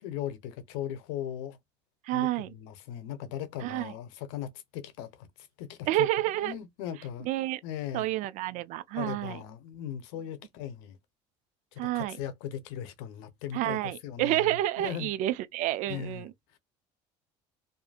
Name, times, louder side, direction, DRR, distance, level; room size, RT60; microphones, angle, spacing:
voice 1, 0.0-1.6 2.1-6.1 6.3-7.3 7.6-8.0 8.9-11.0 11.7-14.5 14.8-15.1 15.9-16.3 16.5-16.6, left 10 dB, 85° left, 0.7 m, -38 dB
voice 2, 2.0-2.5 3.6-3.9 5.9-6.6 7.2-7.6 7.9-9.4 11.8-12.2 13.5-16.3, right 15 dB, 65° right, 0.4 m, -29 dB
2.6 x 2.5 x 2.4 m
cardioid pair, 115°, 14 cm